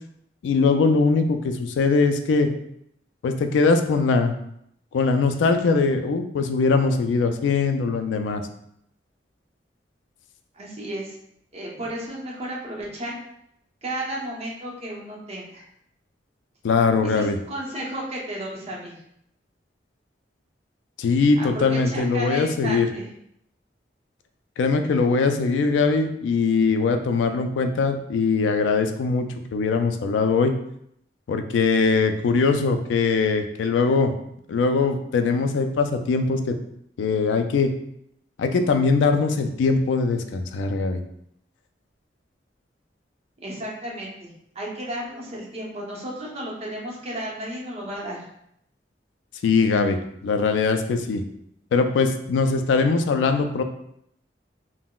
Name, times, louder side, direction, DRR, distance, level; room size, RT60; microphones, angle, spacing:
voice 1, 0.4-2.5 3.2-4.4 4.9-8.4 16.6-17.4 21.0-22.9 24.6-30.5 31.3-34.1 34.5-36.6 37.0-37.7 38.4-41.0 49.4-51.2 51.7-53.6, left 4 dB, 85° left, 7 dB, 0.3 m, -21 dB
voice 2, 10.5-11.1 11.5-13.2 13.8-15.6 17.0-18.9 21.4-23.1 43.4-44.3 44.5-48.2, right 1 dB, 35° right, -3 dB, 0.7 m, -33 dB
3.7 x 2.0 x 2.2 m, 0.74 s
head